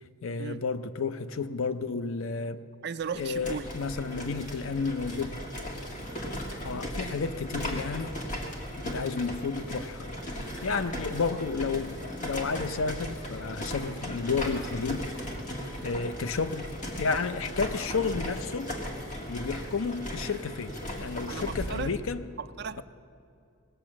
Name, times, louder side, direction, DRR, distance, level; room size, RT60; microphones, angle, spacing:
voice 1, 0.2-2.6 3.2-5.4 6.6-8.1 8.8-10.1 10.6-15.1 15.8-16.7 17.0-18.8 19.3-20.7 21.0-22.2, left 4 dB, 65° left, 0.5 m, -31 dB
voice 2, 2.8-3.7 21.3-21.9 22.4-22.8, right 6 dB, 50° right, 0.4 m, -36 dB
sound 1, 3.0-21.9, equal, 35° left, 1.6 m, -37 dB
18.5 x 6.8 x 7.4 m
head